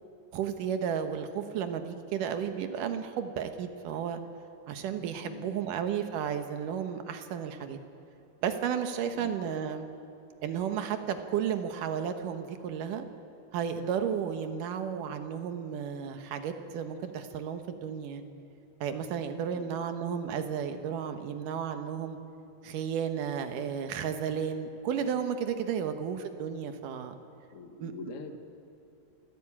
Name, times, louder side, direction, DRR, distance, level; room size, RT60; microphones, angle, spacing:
voice 1, 0.3-4.2 4.7-7.8 8.4-9.9 10.4-13.1 13.5-18.3 18.8-22.2 22.6-27.1 27.8-27.9, right 8 dB, 85° right, 8 dB, 2.8 m, -33 dB
voice 2, 5.2-5.6 9.1-9.4 19.5-19.7 25.8-25.9 27.5-28.4, left 4 dB, 45° left, 6 dB, 1.0 m, -44 dB
26.5 x 15.5 x 8.7 m, 2.7 s
omnidirectional pair, 3.7 m